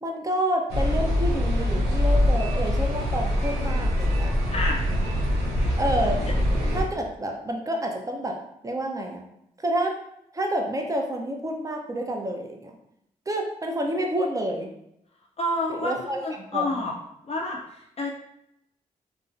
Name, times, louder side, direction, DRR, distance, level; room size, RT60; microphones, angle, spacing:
voice 1, 0.0-4.4 5.8-6.2 6.7-8.4 8.6-9.2 9.6-9.9 10.3-12.7 13.3-14.7 15.7-16.2 16.5-16.8, right 1 dB, 20° right, 2 dB, 0.5 m, -28 dB
sound 1, 0.7-6.8, left 1 dB, 85° right, 0.5 m, -24 dB
voice 2, 4.5-4.8 15.4-16.9 17.3-18.1, left 2 dB, 40° left, -1 dB, 0.4 m, -29 dB
2.4 x 2.0 x 2.5 m, 0.79 s
supercardioid pair, 40°, 16 cm